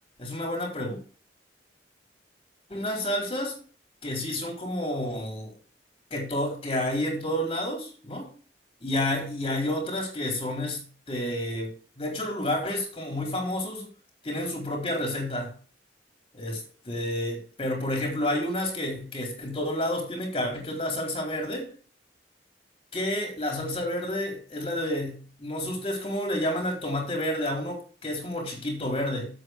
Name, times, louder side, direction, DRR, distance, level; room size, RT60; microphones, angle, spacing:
voice 1, 0.2-1.0 2.7-3.5 4.0-5.5 6.1-8.3 8.8-13.9 14.2-15.5 16.3-21.6 22.9-29.3, left 1 dB, 35° left, 0 dB, 4.6 m, -30 dB
9.0 x 8.1 x 4.7 m, 0.40 s
head